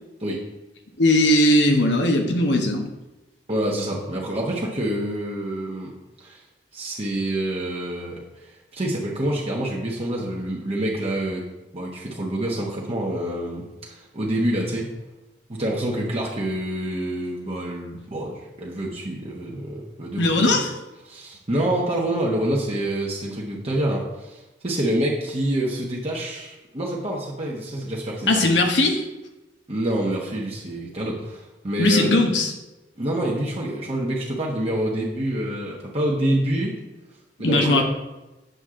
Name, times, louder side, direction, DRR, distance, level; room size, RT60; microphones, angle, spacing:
voice 1, 1.0-2.9 20.2-20.7 28.3-29.0 31.8-32.5 37.4-37.8, left 1 dB, 80° left, 3 dB, 1.1 m, -19 dB
voice 2, 3.5-5.9 6.2-6.4 6.7-8.2 8.7-11.4 11.7-14.9 15.5-20.6 21.1-28.5 29.7-32.2 33.0-36.8 37.4-37.8, right 1 dB, 35° right, -3 dB, 1.1 m, -27 dB
8.0 x 6.2 x 3.8 m, 1.0 s
head